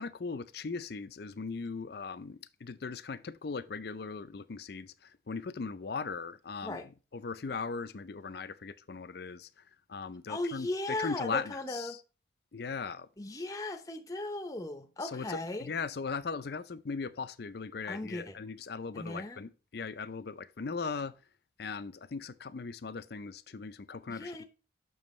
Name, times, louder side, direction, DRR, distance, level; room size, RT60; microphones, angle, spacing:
voice 1, 0.0-6.8 7.1-9.5 9.9-12.0 12.5-13.1 15.0-21.1 21.6-24.4, left 4 dB, 55° left, 0.5 m, -39 dB
voice 2, 10.3-12.0 13.2-15.7 17.8-18.4 18.9-19.4 24.1-24.4, left 2 dB, 20° left, 0.7 m, -37 dB
7.1 x 6.2 x 3.1 m
head